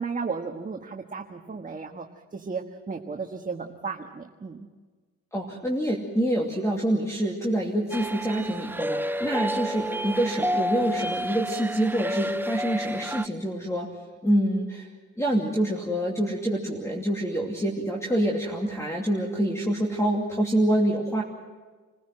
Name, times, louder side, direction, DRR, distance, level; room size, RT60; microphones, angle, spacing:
voice 1, 0.0-2.1 2.3-4.7, right 5 dB, 25° right, 3 dB, 1.5 m, -34 dB
voice 2, 5.3-13.9 14.2-14.9 15.2-21.2, right 1 dB, 10° left, -1 dB, 2.7 m, -26 dB
sound 1, 7.9-13.3, equal, 5° right, 0.7 m, -30 dB
27.5 x 16.0 x 7.7 m, 1.4 s
cardioid pair, 90°, 30 cm